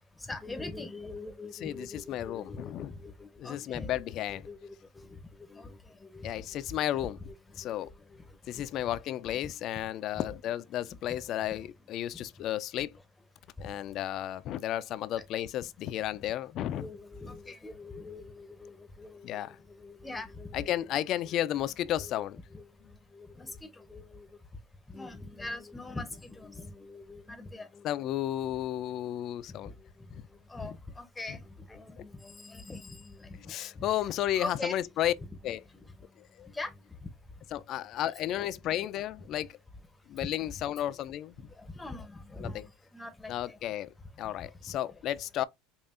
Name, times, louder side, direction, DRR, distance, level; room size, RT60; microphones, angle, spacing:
voice 1, 0.2-4.0 4.3-6.3 6.6-7.1 7.6-8.4 10.1-10.2 12.1-12.2 13.6-13.7 16.7-20.7 21.3-21.4 22.0-22.1 22.5-24.3 24.9-28.0 29.6-30.2 30.5-33.9 34.4-34.8 35.7-35.9 36.5-37.1 40.2-40.3 41.6-43.6 44.4-44.5, left 2 dB, 10° left, 0.6 m, -43 dB
voice 2, 1.5-2.9 3.4-4.5 6.2-7.2 7.6-7.9 8.5-12.9 13.6-16.9 19.2-19.6 20.5-22.4 27.8-29.7 30.1-30.2 30.6-30.7 31.3-31.4 33.5-35.1 35.4-35.6 36.2-36.5 37.5-39.6 40.1-41.5 42.4-42.6 43.3-43.9 44.2-45.4, left 12 dB, 40° left, 0.3 m, -33 dB
5.4 x 2.4 x 2.4 m
supercardioid pair, 145°, 0 cm